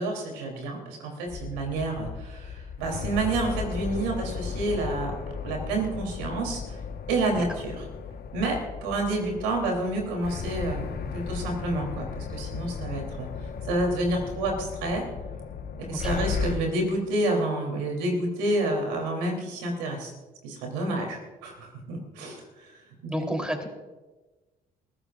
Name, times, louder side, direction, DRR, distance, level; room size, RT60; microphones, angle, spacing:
voice 1, 0.0-5.1 5.4-6.6 7.1-7.9 8.3-13.3 13.7-15.0 15.8-20.1 20.4-22.4 23.0-23.1, right 2 dB, 85° right, 1 dB, 3.5 m, -29 dB
sound 1, 1.3-16.5, left 6 dB, 55° left, 1.4 m, -35 dB
voice 2, 23.1-23.7, equal, 5° right, 3 dB, 3.6 m, -31 dB
22.0 x 15.0 x 2.6 m, 1.2 s
hypercardioid pair, 55°, 20 cm